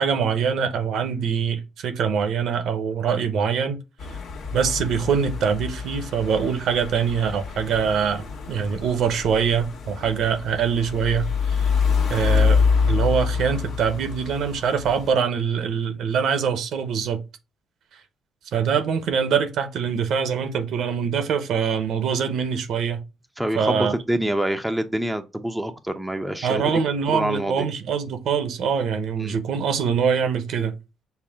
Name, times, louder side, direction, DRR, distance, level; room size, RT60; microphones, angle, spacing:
voice 1, 0.0-3.8 4.5-11.7 12.1-17.2 18.5-23.0 23.5-23.9 26.4-30.7, right 6 dB, 75° right, 0.9 m, -24 dB
sound 1, 4.0-15.1, left 5 dB, 70° left, 1.3 m, -26 dB
voice 2, 23.4-26.8 27.1-27.7 29.2-29.4, right 1 dB, 5° right, 0.7 m, -26 dB
5.8 x 2.1 x 3.5 m
cardioid pair, 90°, 0 cm